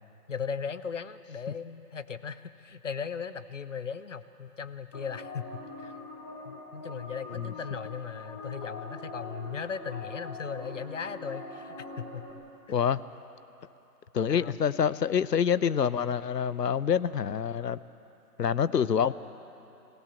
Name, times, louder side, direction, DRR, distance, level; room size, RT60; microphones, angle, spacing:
voice 1, 0.3-5.9 6.4-12.3 12.7-12.8 14.3-14.6, left 6 dB, 50° left, 13 dB, 0.8 m, -37 dB
sound 1, 4.9-12.3, left 2 dB, 10° left, 1.2 m, -43 dB
voice 2, 12.7-13.0 14.1-17.8 18.4-19.1, left 7 dB, 75° left, 16 dB, 0.8 m, -26 dB
22.0 x 16.5 x 7.2 m, 2.9 s
figure-of-eight pair, 155°, 49 cm